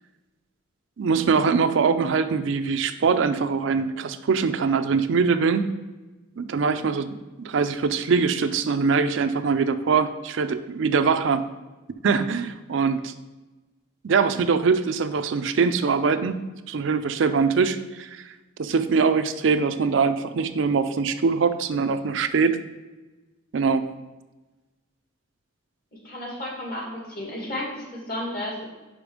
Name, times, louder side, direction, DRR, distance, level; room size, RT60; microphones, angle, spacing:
voice 1, 1.0-5.7 6.4-11.4 12.0-13.1 14.0-16.4 16.7-18.3 18.6-22.6 23.5-23.8, right 5 dB, 65° right, 10 dB, 0.4 m, -23 dB
voice 2, 25.9-28.7, left 1 dB, 50° left, -4 dB, 2.2 m, -33 dB
5.1 x 5.1 x 5.0 m, 1.1 s
head